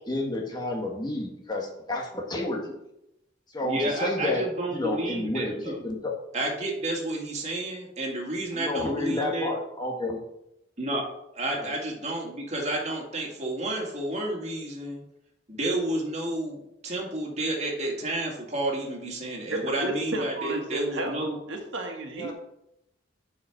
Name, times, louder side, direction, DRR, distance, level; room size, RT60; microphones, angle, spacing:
voice 1, 0.1-2.8 3.5-4.4 4.7-6.1 8.5-10.2 11.5-11.7 22.1-22.3, left 2 dB, 20° left, 0 dB, 1.4 m, -30 dB
voice 2, 3.6-5.8 6.3-9.5 10.8-11.0 11.3-15.0 15.5-21.4, right 1 dB, 35° right, 0 dB, 2.1 m, -30 dB
voice 3, 19.5-22.3, right 1 dB, 80° right, 2 dB, 1.7 m, -33 dB
8.3 x 4.9 x 5.9 m, 0.84 s
head